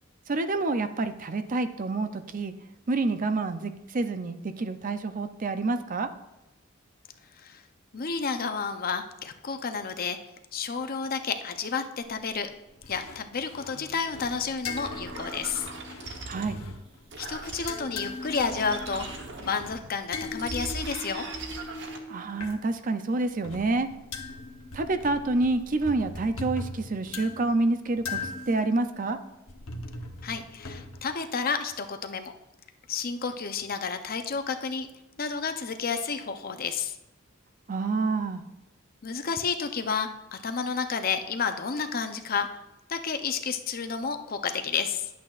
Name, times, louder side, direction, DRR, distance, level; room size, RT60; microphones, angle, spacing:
voice 1, 0.3-2.5 2.9-6.1 16.3-16.6 22.1-23.9 24.7-29.2 37.7-38.4, right 3 dB, 40° right, 10 dB, 0.5 m, -28 dB
voice 2, 7.9-10.2 10.5-12.5 12.9-15.7 17.2-19.1 19.4-21.3 30.2-32.3 32.9-34.9 35.2-36.9 39.0-42.6 42.9-45.1, left 5 dB, 45° left, 7 dB, 0.6 m, -31 dB
sound 1, 12.0-12.5 12.8-17.2 17.5-22.6 23.2-31.0, left 3 dB, 80° left, 1.0 m, -40 dB
sound 2, 14.1-19.9 20.3-22.0, right 3 dB, 60° right, 1.0 m, -40 dB
11.0 x 8.3 x 2.5 m, 0.94 s
head